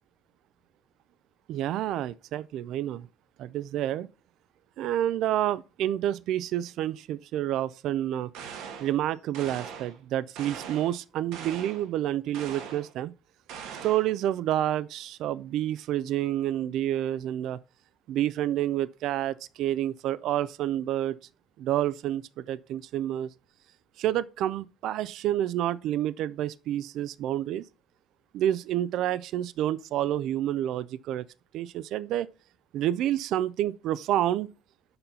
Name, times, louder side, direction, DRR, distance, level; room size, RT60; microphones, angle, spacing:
voice 1, 1.5-3.1 3.4-4.1 4.8-8.3 8.8-13.1 13.8-17.6 18.1-21.2 21.6-23.3 24.0-27.6 28.3-31.2 31.5-32.3 32.7-34.5, right 12 dB, 60° right, 0.4 m, -29 dB
sound 1, 8.3-9.0 9.3-10.0 10.3-11.0 11.3-11.9 12.3-12.9 13.5-14.1, right 7 dB, 80° right, 1.4 m, -41 dB
6.8 x 5.7 x 5.3 m
cardioid pair, 160°, 0 cm